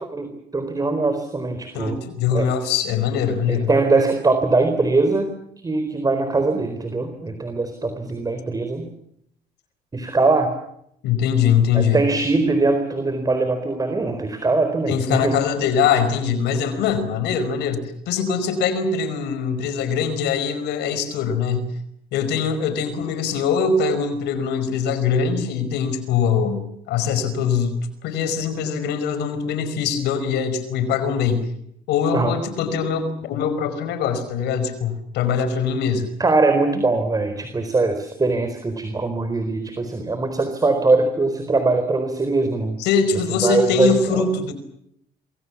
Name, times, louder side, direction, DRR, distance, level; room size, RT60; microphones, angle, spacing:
voice 1, 0.1-2.0 2.3-2.5 3.5-5.3 5.6-8.9 9.9-10.5 11.7-15.3 32.1-32.4 36.2-42.8 43.4-44.2, right 3 dB, 20° right, 8 dB, 4.3 m, -21 dB
voice 2, 1.7-3.7 11.0-12.0 14.9-21.7 22.1-31.4 31.9-36.1 42.8-44.5, left 6 dB, 85° left, 11 dB, 5.2 m, -22 dB
27.5 x 23.5 x 7.3 m, 0.73 s
cardioid pair, 110°, 17 cm